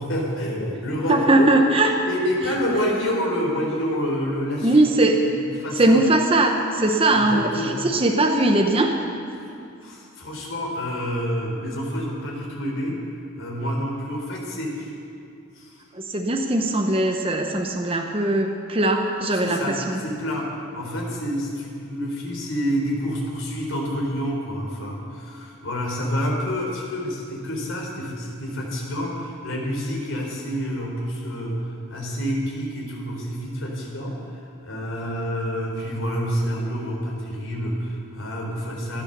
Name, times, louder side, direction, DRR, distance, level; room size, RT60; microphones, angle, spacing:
voice 1, 0.0-1.5 2.1-4.9 5.2-6.0 7.1-7.8 9.3-9.5 9.8-13.0 13.3-14.9 15.5-15.8 19.3-39.0, equal, 65° left, -2 dB, 3.9 m, -28 dB
voice 2, 1.1-1.9 4.6-5.3 5.8-7.5 7.9-9.0 16.1-20.0, right 2 dB, 25° right, 2 dB, 0.9 m, -20 dB
16.5 x 11.5 x 6.9 m, 2.5 s
head